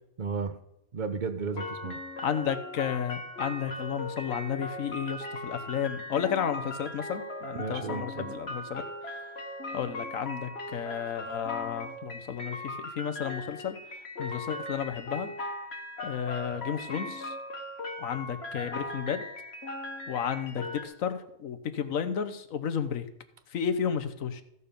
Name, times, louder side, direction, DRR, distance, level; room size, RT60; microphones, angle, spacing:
voice 1, 0.2-0.5 0.9-2.0 7.5-8.3, right 5 dB, 40° right, 9 dB, 0.9 m, -33 dB
sound 1, 1.5-20.8, left 2 dB, 50° left, 1.6 m, -39 dB
voice 2, 2.2-8.8 9.7-13.7 14.2-15.3 16.0-17.3 18.0-19.2 20.1-23.1 23.5-24.4, left 8 dB, 70° left, 10 dB, 1.3 m, -32 dB
15.0 x 6.9 x 5.2 m, 0.79 s
omnidirectional pair, 1.5 m